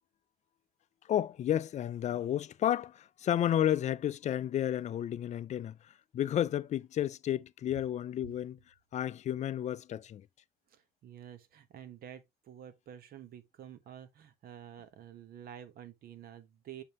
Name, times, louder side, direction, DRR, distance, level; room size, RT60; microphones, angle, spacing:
voice 1, 1.1-10.3, left 11 dB, 45° left, 0.4 m, -32 dB
voice 2, 10.7-16.8, right 10 dB, 60° right, 1.3 m, -49 dB
6.6 x 5.3 x 3.0 m
cardioid pair, 110°, 17 cm